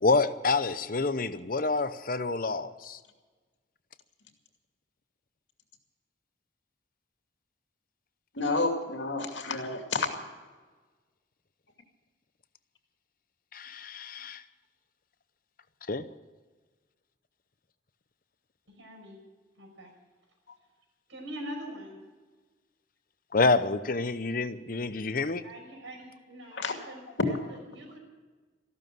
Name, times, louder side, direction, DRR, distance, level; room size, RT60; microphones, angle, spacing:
voice 1, 0.0-3.0 13.5-14.4 15.9-16.0 23.3-25.4, left 3 dB, 45° left, 13 dB, 0.7 m, -28 dB
voice 2, 8.3-10.2 26.6-26.7, left 3 dB, 75° left, 4 dB, 2.5 m, -30 dB
voice 3, 18.7-19.2 19.6-19.9 21.1-22.0 25.4-28.0, equal, 90° right, 2 dB, 5.7 m, -43 dB
15.0 x 12.5 x 7.7 m, 1.3 s
head